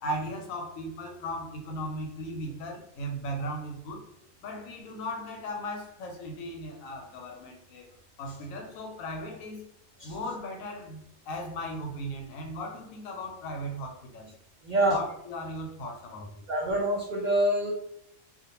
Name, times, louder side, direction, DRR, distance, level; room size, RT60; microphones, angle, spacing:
voice 1, 0.0-4.1 4.4-7.9 8.2-9.6 10.0-14.3 14.9-16.4, equal, 90° left, 2 dB, 1.0 m, -37 dB
voice 2, 14.6-15.0 16.5-17.7, right 1 dB, 90° right, -2 dB, 0.4 m, -26 dB
2.3 x 2.2 x 2.9 m, 0.77 s
omnidirectional pair, 1.4 m